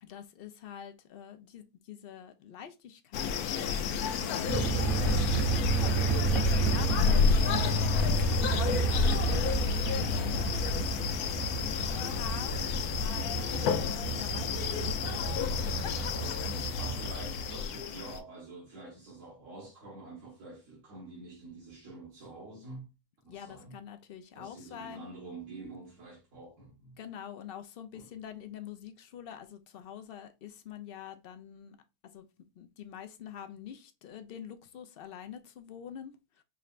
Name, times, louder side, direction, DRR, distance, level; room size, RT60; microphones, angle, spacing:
voice 1, 0.0-8.1 8.4-9.6 9.9-11.1 11.9-16.4 23.3-25.1 27.0-31.8 32.0-32.3 32.6-36.4, left 9 dB, 65° left, 0.6 m, -46 dB
sound 1, 3.1-18.2, left 6 dB, 90° left, 1.1 m, -30 dB
sound 2, 4.5-17.7, right 4 dB, 40° right, 1.1 m, -31 dB
sound 3, 7.4-11.5 11.8-12.9, right 4 dB, 80° right, 1.2 m, -49 dB
voice 2, 11.4-11.8 16.8-22.9 23.2-23.8 24.3-27.0 27.9-28.1, right 3 dB, 60° right, 1.6 m, -47 dB
4.9 x 3.2 x 2.4 m
omnidirectional pair, 1.5 m